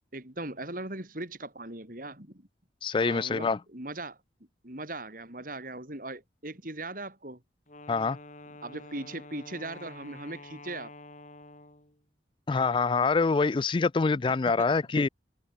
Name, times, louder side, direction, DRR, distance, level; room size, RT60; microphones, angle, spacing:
voice 1, 0.1-2.5 3.0-4.2 4.6-7.4 8.6-10.9 14.5-14.7, right 2 dB, 50° right, 5.2 m, -39 dB
voice 2, 2.8-3.6 7.9-8.2 12.5-15.1, left 4 dB, 25° left, 0.3 m, -25 dB
Wind instrument woodwind instrument, 7.7-12.0, left 2 dB, 45° left, 7.3 m, -48 dB
head